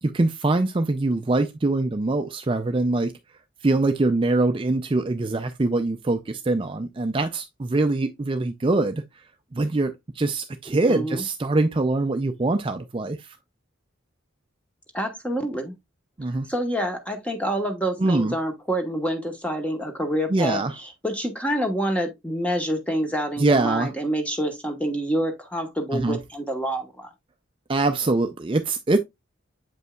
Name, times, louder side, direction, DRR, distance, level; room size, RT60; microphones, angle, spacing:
voice 1, 0.0-3.1 3.6-9.2 9.5-13.4 16.2-16.5 18.0-18.3 20.3-20.7 23.4-23.9 25.9-26.2 27.7-29.0, right 2 dB, 25° right, 0.4 m, -23 dB
voice 2, 10.9-11.2 14.9-15.8 16.5-27.1, equal, 5° left, 1.0 m, -27 dB
7.8 x 5.3 x 2.3 m
head